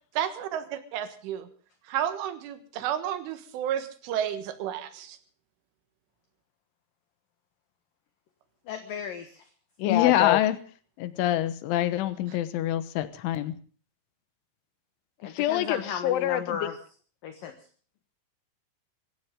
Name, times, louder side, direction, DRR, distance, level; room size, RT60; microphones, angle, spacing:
voice 1, 0.2-1.5 1.9-5.2, right 10 dB, 90° right, 10 dB, 4.1 m, -31 dB
voice 2, 8.7-9.4 15.2-16.8 17.2-17.5, left 7 dB, 60° left, 7 dB, 2.5 m, -35 dB
voice 3, 9.8-10.6 11.0-13.5 15.2-16.7, left 13 dB, 80° left, 12 dB, 3.6 m, -25 dB
24.5 x 14.5 x 3.7 m, 0.41 s
omnidirectional pair, 5.4 m